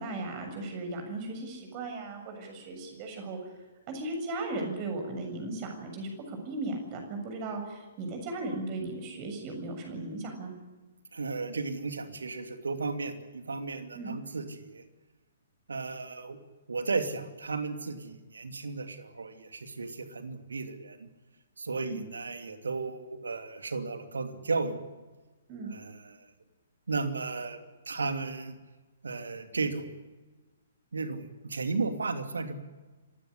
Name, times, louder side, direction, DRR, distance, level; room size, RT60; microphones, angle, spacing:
voice 1, 0.0-3.4 3.9-10.5 13.9-14.1 21.8-22.0 25.5-25.7, right 2 dB, 30° right, 4 dB, 7.1 m, -36 dB
voice 2, 11.1-14.8 15.7-16.4 16.7-21.1 21.6-24.8 25.6-26.3 26.9-28.6 29.0-29.9 30.9-32.6, right 4 dB, 65° right, 8 dB, 2.7 m, -34 dB
26.5 x 16.5 x 9.9 m, 1.3 s
figure-of-eight pair, 120°, 0 cm